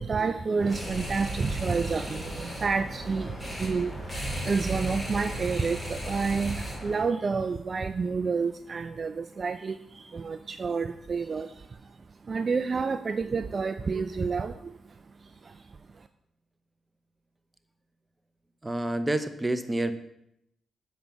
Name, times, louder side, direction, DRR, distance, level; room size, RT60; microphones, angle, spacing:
voice 1, 0.0-16.1, right 4 dB, 50° right, 10 dB, 0.4 m, -30 dB
sound 1, 0.6-7.1, right 1 dB, 10° left, 3.5 m, -35 dB
voice 2, 18.6-19.9, right 1 dB, 20° right, 10 dB, 1.0 m, -28 dB
8.0 x 5.2 x 7.0 m, 0.79 s
supercardioid pair, 55°, 0 cm